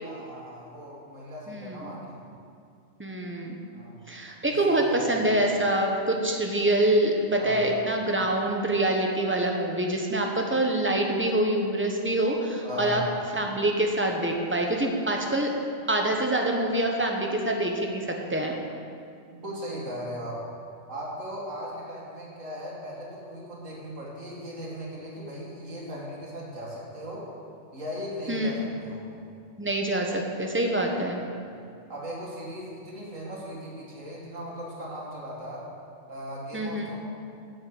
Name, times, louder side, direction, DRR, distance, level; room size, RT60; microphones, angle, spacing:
voice 1, 0.0-2.2 3.7-4.0 4.4-5.3 7.4-7.7 12.6-13.1 19.3-20.4 20.9-27.3 27.7-29.0 31.9-35.7 36.1-37.0, equal, 85° right, -4 dB, 2.6 m, -38 dB
voice 2, 1.5-1.9 3.0-3.6 4.1-13.0 13.3-15.5 15.9-18.6 28.3-28.5 29.6-31.2 36.5-36.9, right 1 dB, 10° right, 1 dB, 1.0 m, -25 dB
9.2 x 6.5 x 8.0 m, 2.4 s
omnidirectional pair, 1.3 m